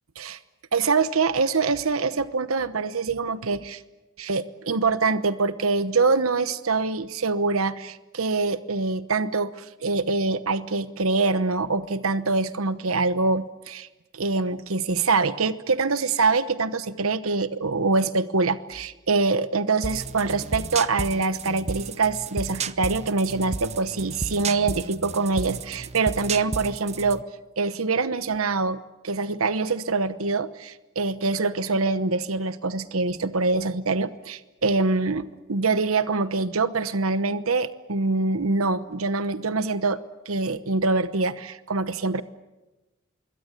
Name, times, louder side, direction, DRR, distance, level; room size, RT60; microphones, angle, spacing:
voice 1, 0.7-3.8 4.2-13.9 14.1-27.2 27.6-40.0 40.3-42.2, right 3 dB, 90° right, 13 dB, 1.0 m, -24 dB
sound 1, 19.8-27.2, right 4 dB, 35° right, 0.8 m, -33 dB
25.5 x 22.5 x 8.3 m, 1.1 s
head